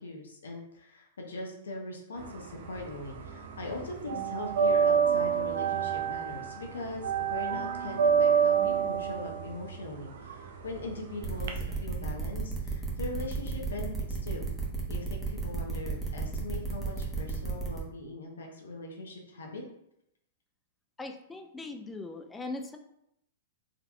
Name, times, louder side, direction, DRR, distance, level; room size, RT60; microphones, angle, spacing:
voice 1, 0.0-14.5 14.9-19.6, left 2 dB, 85° left, 1 dB, 0.7 m, -41 dB
sound 1, 2.2-3.3 3.6-11.5, right 7 dB, 65° right, 0.5 m, -27 dB
sound 2, 11.2-17.8, right 3 dB, 10° right, 0.9 m, -34 dB
voice 2, 21.0-22.8, left 3 dB, 10° left, 5 dB, 0.4 m, -40 dB
3.8 x 2.8 x 2.2 m, 0.78 s
hypercardioid pair, 115°, 0 cm